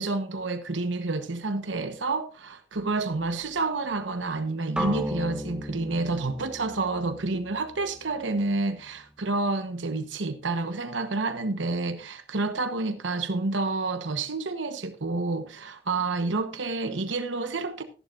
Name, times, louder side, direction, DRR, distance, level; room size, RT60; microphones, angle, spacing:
voice 1, 0.0-17.8, right 3 dB, 90° right, 1.0 m, -29 dB
sound 1, 4.8-8.7, equal, 5° right, 1.3 m, -35 dB
14.0 x 11.5 x 2.5 m
head